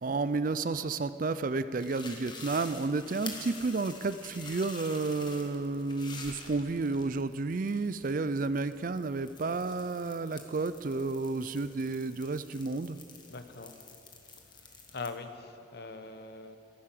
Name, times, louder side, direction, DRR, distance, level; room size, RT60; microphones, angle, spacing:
voice 1, 0.0-13.0, right 3 dB, 45° right, 13 dB, 0.4 m, -31 dB
sound 1, 1.8-15.1, left 4 dB, 25° left, 1.4 m, -48 dB
voice 2, 13.3-13.7 14.9-16.6, left 3 dB, 55° left, 8 dB, 1.0 m, -41 dB
15.0 x 11.5 x 7.6 m, 2.8 s
head